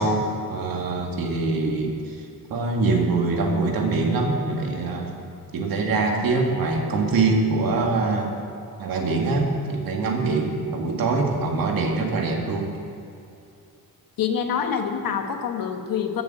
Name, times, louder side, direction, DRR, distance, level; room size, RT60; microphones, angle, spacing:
voice 1, 0.0-2.2 2.5-5.1 5.5-8.3 8.8-12.7, right 3 dB, 75° right, 1 dB, 2.1 m, -24 dB
voice 2, 14.2-16.2, left 7 dB, 70° left, 5 dB, 1.3 m, -26 dB
15.0 x 7.0 x 7.5 m, 2.6 s
cardioid pair, 150°, 35 cm